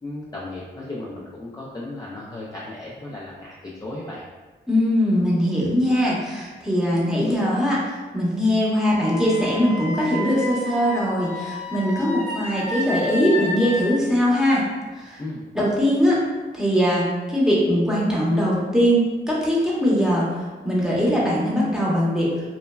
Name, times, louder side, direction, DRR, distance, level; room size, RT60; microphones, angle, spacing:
voice 1, 0.0-4.2 15.2-15.4, left 2 dB, 20° left, -5 dB, 0.4 m, -35 dB
voice 2, 4.7-14.7 15.0-15.2 15.5-16.2 16.5-22.3, equal, 5° right, -6 dB, 0.9 m, -21 dB
Wind instrument woodwind instrument, 8.8-13.9, left 1 dB, 35° left, 0.8 m, -32 dB
3.0 x 2.1 x 2.2 m, 1.3 s
cardioid pair, 60°, 19 cm